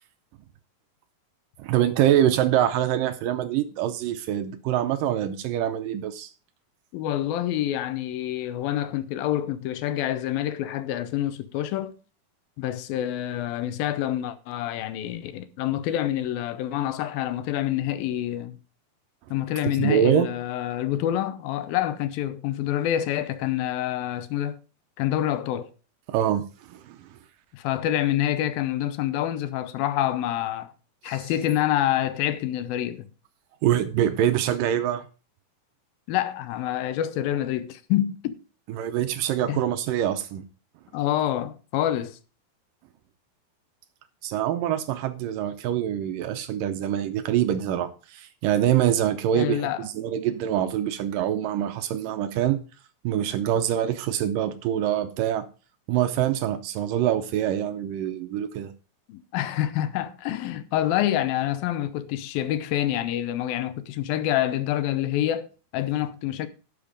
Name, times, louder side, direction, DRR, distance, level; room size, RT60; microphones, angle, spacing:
voice 1, 1.6-6.3 19.6-20.3 26.1-26.4 26.7-27.1 31.1-31.2 33.6-35.1 38.7-40.4 44.2-52.6 53.0-55.5 55.9-58.7, right 11 dB, 75° right, 2.2 m, -25 dB
voice 2, 6.9-11.9 12.6-18.6 19.3-24.6 25.0-25.7 27.5-30.7 31.0-33.1 36.1-38.4 39.5-39.6 40.9-42.2 49.3-49.9 59.1-66.5, left 12 dB, 80° left, 2.5 m, -27 dB
12.0 x 6.8 x 5.1 m
omnidirectional pair, 4.3 m